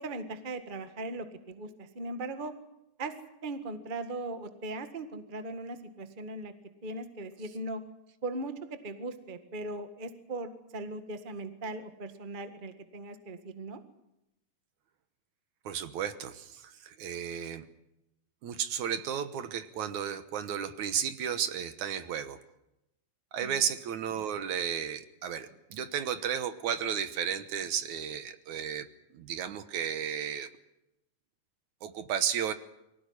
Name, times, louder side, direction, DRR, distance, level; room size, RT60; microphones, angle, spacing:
voice 1, 0.0-2.5 3.0-3.1 3.4-6.5 6.8-7.8 8.2-8.5 8.8-13.8 23.4-23.7, right 2 dB, 30° right, 9 dB, 0.8 m, -39 dB
voice 2, 15.7-17.7 18.4-22.4 23.3-28.9 29.1-30.5 31.8-32.5, right 8 dB, 65° right, 11 dB, 2.3 m, -33 dB
24.0 x 17.0 x 9.7 m, 0.88 s
omnidirectional pair, 4.0 m